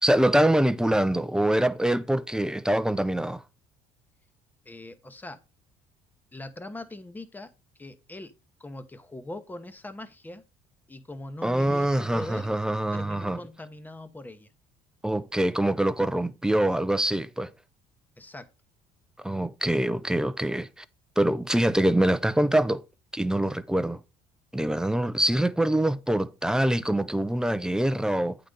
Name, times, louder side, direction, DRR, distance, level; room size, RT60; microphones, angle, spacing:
voice 1, 0.0-3.4 11.4-13.4 15.0-17.5 19.2-20.8 21.2-22.8 23.1-24.0 24.5-28.4, right 1 dB, 5° right, 0.5 m, -24 dB
voice 2, 4.6-5.4 6.3-8.3 8.6-10.4 10.9-12.5 12.9-14.5 18.2-18.5, left 2 dB, 10° left, 0.9 m, -41 dB
8.6 x 3.9 x 5.0 m
supercardioid pair, 85°, 14 cm